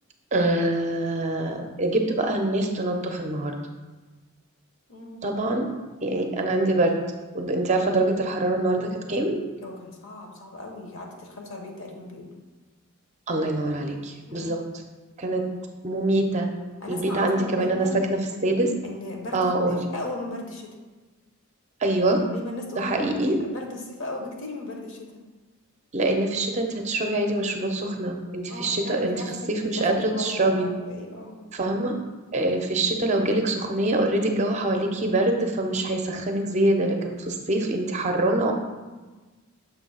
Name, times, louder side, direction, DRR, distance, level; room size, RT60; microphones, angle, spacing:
voice 1, 0.3-3.6 5.2-5.7 6.0-7.0 7.3-9.4 13.3-14.8 15.2-15.4 15.8-16.5 16.9-18.7 19.3-19.8 21.8-22.2 22.8-23.3 25.9-29.2 29.5-30.7 31.5-31.9 32.3-38.5, right 2 dB, 30° right, 3 dB, 0.6 m, -24 dB
voice 2, 4.9-5.2 9.6-12.3 14.3-14.6 16.8-18.0 18.8-20.7 22.3-25.2 28.5-29.3 29.7-31.5, left 2 dB, 60° left, 1 dB, 1.0 m, -37 dB
6.7 x 2.8 x 5.5 m, 1.2 s
head